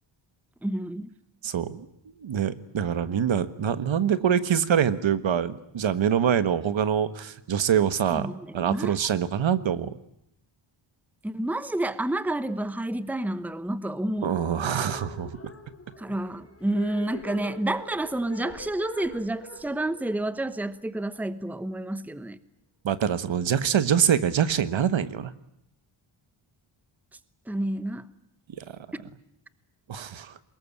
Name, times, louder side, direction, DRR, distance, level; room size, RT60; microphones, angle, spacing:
voice 1, 0.6-1.1 8.1-8.9 11.2-14.4 16.0-22.4 27.5-28.1, right 1 dB, 5° right, 14 dB, 0.9 m, -29 dB
voice 2, 1.4-1.9 2.2-9.9 14.2-15.4 22.8-25.3 28.6-28.7 29.9-30.4, right 8 dB, 70° right, 13 dB, 1.5 m, -25 dB
sound 1, 14.1-21.3, left 2 dB, 30° left, 4.3 m, -43 dB
24.0 x 21.0 x 10.0 m, 0.79 s
wide cardioid pair, 145°, 47 cm